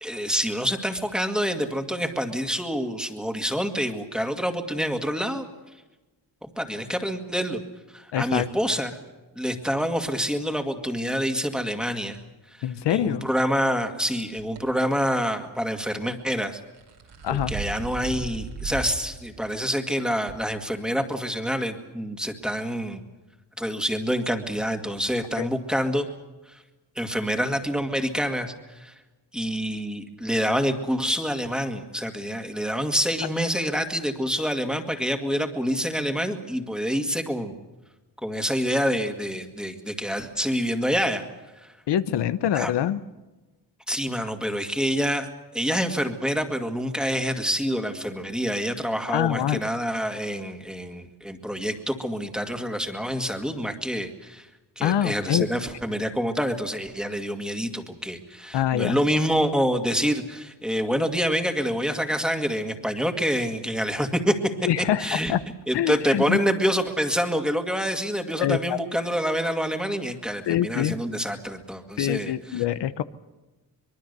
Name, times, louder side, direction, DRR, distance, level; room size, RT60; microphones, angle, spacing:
voice 1, 0.0-5.5 6.4-7.6 7.9-8.9 9.4-12.2 12.9-16.6 17.3-23.0 23.6-26.1 26.5-26.6 27.0-28.9 29.3-37.6 38.2-41.2 41.6-41.7 42.5-42.7 43.9-45.3 45.5-54.5 54.8-64.5 64.8-65.3 65.7-72.6, equal, ahead, 5 dB, 2.1 m, -27 dB
voice 2, 8.1-8.5 12.6-13.3 17.2-17.5 25.4-25.5 41.9-43.0 49.1-49.6 54.8-55.5 58.5-59.0 64.6-65.4 65.7-66.4 68.4-68.8 70.5-70.9 72.0-73.0, left 11 dB, 80° left, 13 dB, 0.9 m, -24 dB
sound 1, 14.6-14.7 16.6-19.0 19.4-19.5 20.3-20.4, right 4 dB, 80° right, 5.2 m, -35 dB
24.5 x 22.5 x 6.8 m, 1.1 s
wide cardioid pair, 135°, 41 cm